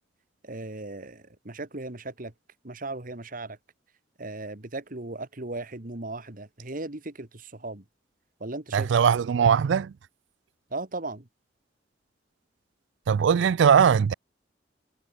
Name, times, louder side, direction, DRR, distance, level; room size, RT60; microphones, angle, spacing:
voice 1, 0.4-2.3 2.6-3.6 4.2-7.8 8.4-9.0 10.7-11.3, right 2 dB, 50° right, 2.0 m, -37 dB
voice 2, 8.7-9.9 13.1-14.1, right 7 dB, 75° right, 0.4 m, -20 dB
head